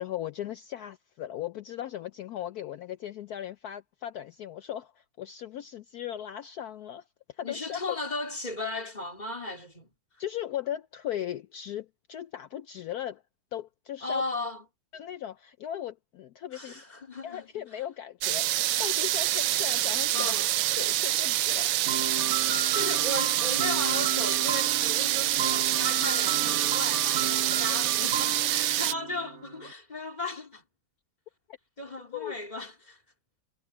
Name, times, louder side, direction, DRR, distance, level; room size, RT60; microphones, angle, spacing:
voice 1, 0.0-7.0 7.4-8.0 10.2-13.2 13.5-14.2 14.9-16.8 17.2-20.3 20.8-21.8 32.1-32.4, left 11 dB, 85° left, 0.8 m, -37 dB
voice 2, 7.4-9.9 14.0-14.6 16.5-17.5 20.1-20.5 22.5-30.6 31.8-33.0, left 2 dB, 20° left, 3.2 m, -36 dB
sound 1, 18.2-28.9, right 14 dB, 90° right, 1.6 m, -26 dB
sound 2, 21.9-29.7, right 6 dB, 35° right, 1.4 m, -35 dB
omnidirectional pair, 2.3 m